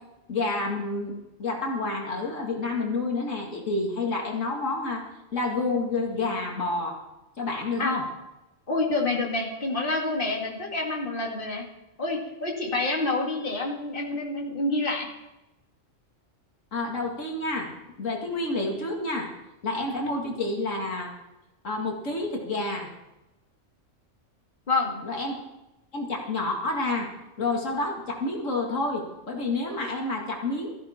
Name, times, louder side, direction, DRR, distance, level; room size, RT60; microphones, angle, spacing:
voice 1, 0.3-5.0 5.3-7.0 7.4-8.0 16.7-19.3 19.6-21.1 21.6-22.9 25.0-25.4 25.9-27.1 27.4-30.7, left 2 dB, 80° left, 0 dB, 2.4 m, -29 dB
voice 2, 8.7-11.7 12.0-15.1 24.7-25.0, left 2 dB, 45° left, -1 dB, 2.5 m, -27 dB
15.5 x 14.5 x 4.4 m, 0.98 s
omnidirectional pair, 1.3 m